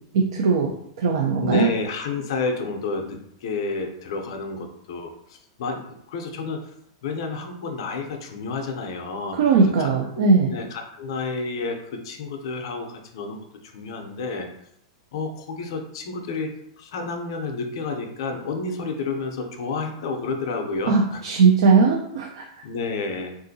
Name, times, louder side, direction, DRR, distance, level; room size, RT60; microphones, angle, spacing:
voice 1, 0.1-0.7 1.0-1.7 9.3-10.5 20.9-22.4, right 4 dB, 60° right, 2 dB, 0.4 m, -19 dB
voice 2, 1.4-6.7 7.0-9.9 10.2-14.5 15.1-21.2 22.6-23.3, left 4 dB, 50° left, 4 dB, 0.5 m, -30 dB
3.6 x 2.5 x 2.6 m, 0.73 s
supercardioid pair, 175°, 3 cm